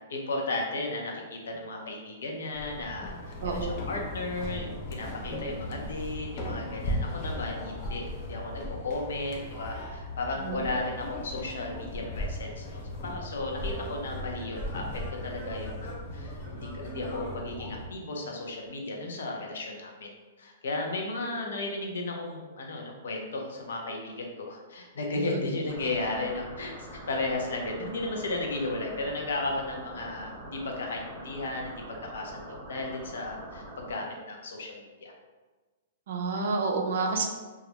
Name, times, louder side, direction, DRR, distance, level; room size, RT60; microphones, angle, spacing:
voice 1, 0.1-20.1 20.4-26.7 27.1-35.1, left 2 dB, 80° left, 1 dB, 0.6 m, -34 dB
sound 1, 2.5-17.9, left 1 dB, 25° left, 0.4 m, -37 dB
voice 2, 3.4-3.8 10.4-10.6 25.2-25.4 36.1-37.2, right 4 dB, 55° right, 3 dB, 0.4 m, -29 dB
Singing / Plucked string instrument, 12.3-18.2, equal, 45° left, 1.3 m, -46 dB
sound 2, 25.7-33.9, right 1 dB, 20° right, 1.0 m, -44 dB
2.3 x 2.1 x 2.9 m, 1.3 s
hypercardioid pair, 170°, 0 cm